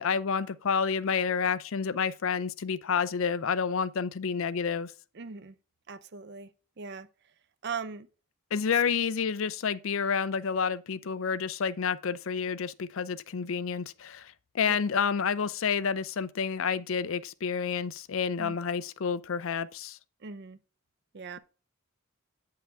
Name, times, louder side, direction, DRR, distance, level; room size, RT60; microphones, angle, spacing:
voice 1, 0.0-4.9 8.5-20.0, left 6 dB, 65° left, 0.5 m, -29 dB
voice 2, 5.1-5.6 5.9-6.5 6.8-7.1 7.6-8.1 14.7-14.8 18.4-18.6 20.2-20.6 21.1-21.4, right 5 dB, 50° right, 0.6 m, -39 dB
8.7 x 5.7 x 3.5 m
head